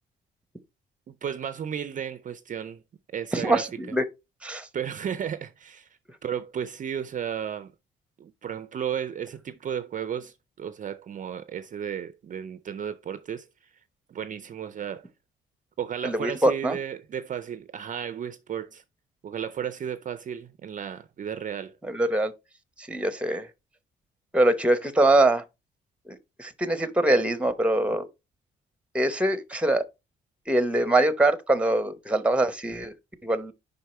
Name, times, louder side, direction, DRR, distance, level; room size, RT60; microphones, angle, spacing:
voice 1, 1.1-2.8 3.1-3.7 4.7-5.9 6.2-7.7 8.2-13.5 14.1-15.1 15.8-18.8 19.2-21.8, right 8 dB, 40° right, 0.4 m, -34 dB
voice 2, 3.3-4.0 4.4-4.7 16.0-16.8 21.8-22.3 22.8-23.5 24.3-25.4 26.1-28.1 28.9-29.8 30.5-32.9 33.2-33.5, right 1 dB, 5° right, 0.9 m, -23 dB
5.3 x 4.6 x 4.2 m
cardioid pair, 90°, 20 cm